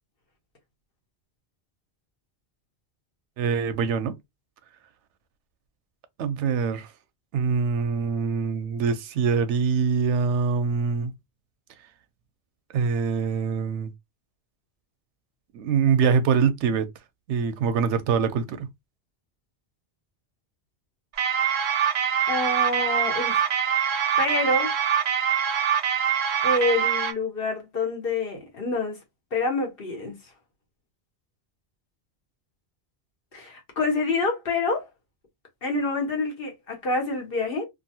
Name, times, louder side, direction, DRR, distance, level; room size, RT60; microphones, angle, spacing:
voice 1, 3.4-4.2 6.2-6.9 7.3-11.1 12.7-13.9 15.5-16.9 17.3-18.7, right 6 dB, 90° right, 0.9 m, -24 dB
sound 1, 21.2-27.1, right 8 dB, 55° right, 0.6 m, -24 dB
voice 2, 22.3-23.5 24.2-24.7 26.4-29.0 29.3-30.2 33.3-34.8 35.6-37.7, left 3 dB, 55° left, 1.2 m, -27 dB
2.7 x 2.5 x 2.6 m
omnidirectional pair, 1.2 m